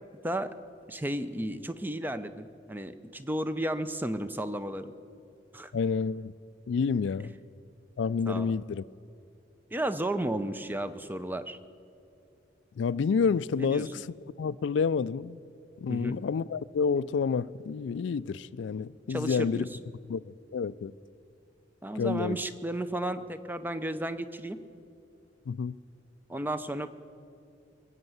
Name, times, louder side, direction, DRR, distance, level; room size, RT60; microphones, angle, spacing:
voice 1, 0.9-4.9 5.5-5.7 8.3-8.5 9.7-11.6 13.6-13.8 15.9-16.1 19.1-19.7 21.8-24.6 26.3-26.9, right 1 dB, 10° right, 0.5 m, -33 dB
voice 2, 5.7-6.3 6.7-7.3 8.0-8.8 12.8-14.1 14.4-15.4 15.8-19.7 20.1-20.9 22.0-22.4 25.5-25.8, left 5 dB, 70° left, 0.3 m, -29 dB
21.5 x 8.1 x 7.9 m
head